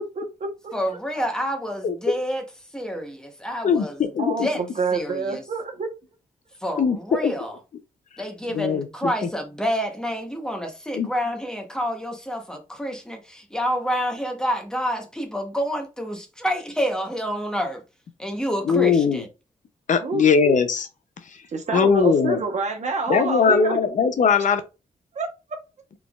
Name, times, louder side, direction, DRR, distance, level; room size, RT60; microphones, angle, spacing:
voice 1, 0.0-0.5 4.2-5.9 20.0-20.3 21.5-23.8 25.1-25.3, right 4 dB, 50° right, 0.9 m, -27 dB
voice 2, 0.7-2.4 2.7-4.0 4.4-4.6 4.9-5.4 6.6-7.6 8.2-17.8 18.2-19.3, equal, 5° left, 0.9 m, -28 dB
voice 3, 1.8-2.1 3.6-4.5 6.8-7.3 8.5-8.9 10.9-11.1 18.7-19.2 19.9-20.9 21.7-22.4 23.1-24.6, left 6 dB, 60° left, 0.5 m, -20 dB
4.1 x 3.4 x 2.3 m
wide cardioid pair, 140°, 15 cm